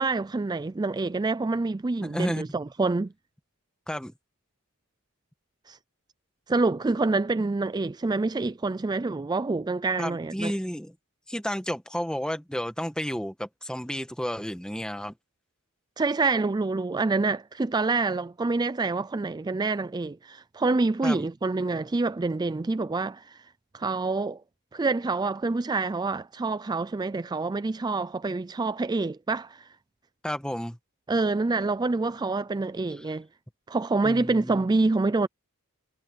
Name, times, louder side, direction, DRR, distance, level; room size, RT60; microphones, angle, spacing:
voice 1, 0.0-3.1 5.7-5.8 6.5-10.5 16.0-23.4 23.7-24.4 24.7-29.7 31.1-33.3 33.7-35.3, right 3 dB, 20° right, 0.3 m, -27 dB
voice 2, 2.0-2.4 3.9-4.1 10.0-10.9 11.3-15.1 21.0-21.3 30.2-30.8 33.1-33.2 34.0-34.6, equal, 5° left, 1.6 m, -32 dB
head